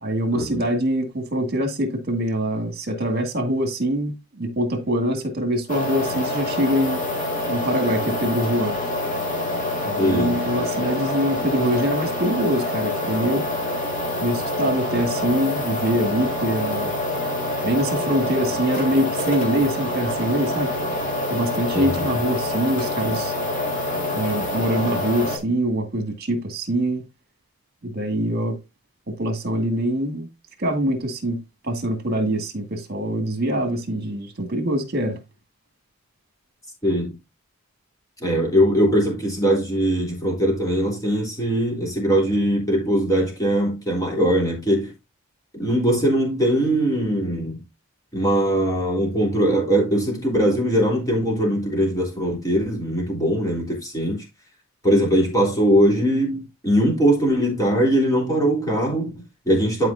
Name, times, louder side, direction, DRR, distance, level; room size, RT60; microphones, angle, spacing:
voice 1, 0.0-7.0 7.5-8.8 9.8-13.5 14.2-16.9 17.6-20.7 21.3-23.3 24.1-27.0 27.8-28.6 29.1-30.3 30.6-31.4 31.6-35.2, equal, 45° right, 2.1 m, -24 dB
sound 1, 5.7-25.4, left 1 dB, 35° left, 2.2 m, -26 dB
voice 2, 10.0-10.4 21.7-22.2 36.8-37.2 38.2-44.9 45.6-47.6 48.1-54.2 54.8-59.9, equal, 15° left, 3.2 m, -21 dB
11.5 x 5.0 x 2.7 m
head